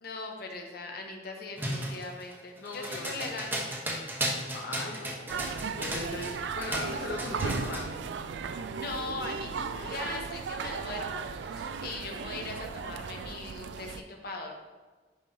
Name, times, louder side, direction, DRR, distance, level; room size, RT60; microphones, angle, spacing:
voice 1, 0.0-3.6 8.7-14.6, left 3 dB, 60° left, 2 dB, 1.0 m, -40 dB
sound 1, 1.6-6.4 6.6-7.9, right 1 dB, 10° right, 1.1 m, -34 dB
voice 2, 2.6-3.1 4.5-7.9, left 2 dB, 90° left, -2 dB, 0.9 m, -38 dB
sound 2, 5.3-14.0, right 5 dB, 80° right, 0.4 m, -36 dB
10.5 x 4.7 x 2.8 m, 1.3 s
head